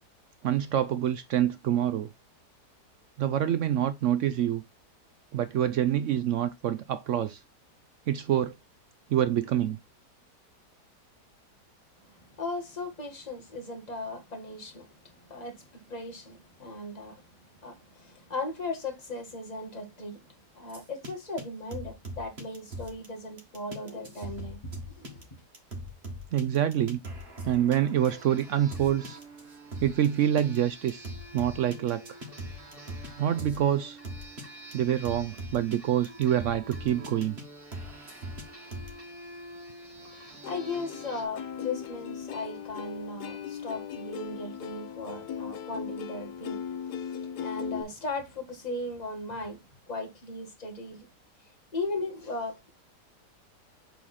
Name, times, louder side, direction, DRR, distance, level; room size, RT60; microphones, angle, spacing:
voice 1, 0.4-2.1 3.2-4.6 5.3-7.4 8.1-8.6 9.1-9.8 26.3-27.0 27.4-29.2 29.8-31.1 31.3-32.2 33.2-34.0 34.7-37.4, right 11 dB, 75° right, 0.7 m, -26 dB
voice 2, 12.0-17.4 17.6-25.2 40.1-51.1 51.7-52.7, left 2 dB, 25° left, 1.6 m, -37 dB
sound 1, 20.7-21.1 21.4-21.5 21.7-23.1 23.4-30.1 30.4-30.6 30.9-33.1 33.4-33.6 34.0-34.4 34.7-34.8 35.0-35.8 36.0-37.4 37.7-38.9, equal, 40° right, 2.0 m, -40 dB
sound 2, 27.9-41.2, right 1 dB, 20° right, 1.8 m, -48 dB
Plucked string instrument, 40.4-47.8, left 8 dB, 70° left, 1.3 m, -38 dB
7.3 x 4.0 x 4.1 m
omnidirectional pair, 1.8 m